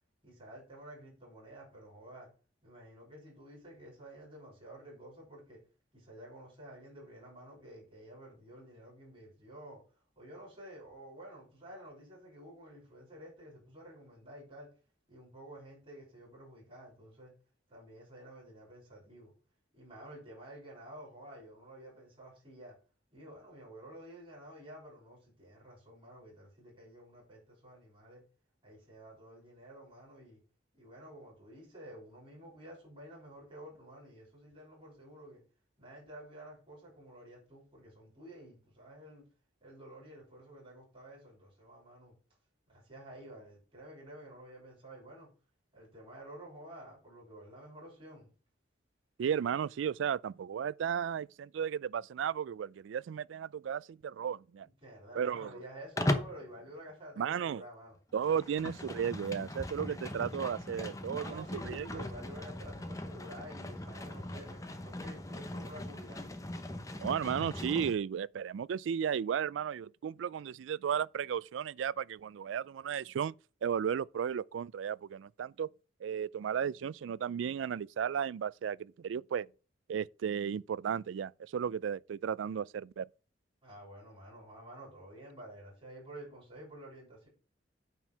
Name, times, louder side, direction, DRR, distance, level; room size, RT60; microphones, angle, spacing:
voice 1, 0.2-2.3 2.6-5.6 5.9-9.8 10.2-14.7 15.1-17.3 17.7-19.3 19.7-22.8 23.1-28.2 28.6-30.4 30.7-35.4 35.8-39.2 39.6-42.1 42.7-45.3 45.7-48.3 54.6-58.0 58.5-58.6 61.2-66.2 83.6-87.3, right 1 dB, 30° right, 5.8 m, -51 dB
voice 2, 49.2-54.7 55.1-55.6 57.2-57.6 58.1-62.0 67.0-73.3 73.6-75.7 76.0-79.5 79.9-83.1, right 8 dB, 85° right, 0.3 m, -34 dB
Livestock farm animals working animals, 56.0-56.4 58.1-67.9, left 1 dB, 15° left, 0.9 m, -39 dB
9.1 x 4.4 x 6.0 m
head